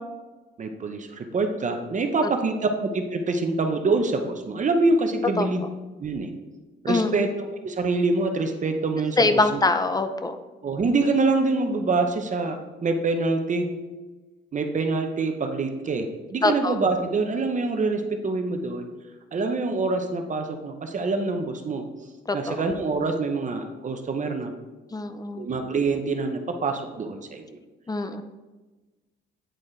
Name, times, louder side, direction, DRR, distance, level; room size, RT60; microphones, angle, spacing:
voice 1, 0.6-5.6 6.0-6.3 6.8-7.3 7.6-9.6 10.6-13.7 14.5-18.9 19.3-21.8 22.3-24.5 25.3-27.6, right 3 dB, 40° right, 5 dB, 0.7 m, -25 dB
voice 2, 9.2-10.4 16.4-16.8 22.3-22.6 24.9-25.5 27.9-28.2, left 3 dB, 20° left, 10 dB, 0.5 m, -23 dB
8.9 x 4.2 x 3.3 m, 1.2 s
cardioid pair, 90°, 20 cm